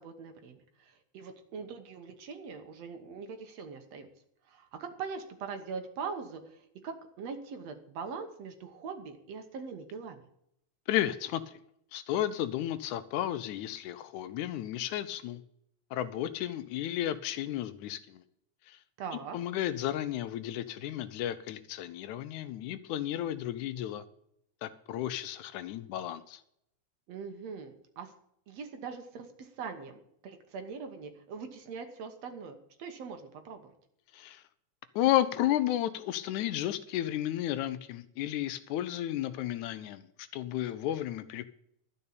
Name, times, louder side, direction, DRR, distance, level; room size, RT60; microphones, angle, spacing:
voice 1, 0.0-4.1 4.5-10.3 19.0-19.4 27.1-28.1 28.5-33.7, right 5 dB, 65° right, 7 dB, 2.2 m, -42 dB
voice 2, 10.9-11.6 11.9-15.4 15.9-18.2 18.7-18.8 19.3-24.0 24.6-26.4 34.1-34.4 35.0-41.5, left 12 dB, 80° left, 13 dB, 2.1 m, -33 dB
12.5 x 5.5 x 8.5 m, 0.73 s
omnidirectional pair, 3.5 m